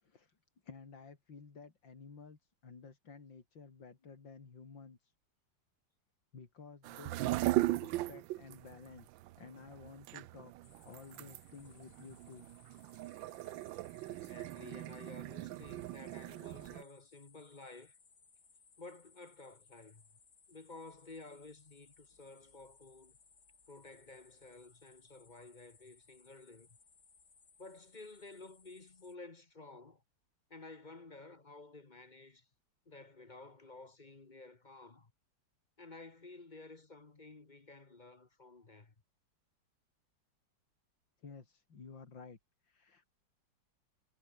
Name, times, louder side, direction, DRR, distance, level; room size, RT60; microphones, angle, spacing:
voice 1, 0.0-0.3 0.6-5.1 6.3-9.1 9.4-10.5 10.9-12.5 41.2-42.4 42.6-43.1, left 5 dB, 80° left, 3.8 m, -53 dB
sound 1, 6.8-16.8, right 17 dB, 90° right, 1.3 m, -38 dB
sound 2, 10.6-29.2, left 5 dB, 55° left, 3.0 m, -66 dB
voice 2, 14.0-18.0 18.8-20.1 20.5-23.2 23.7-26.8 27.6-30.0 30.5-32.5 32.8-35.1 35.8-38.9, left 3 dB, 25° left, 1.4 m, -53 dB
omnidirectional pair, 2.0 m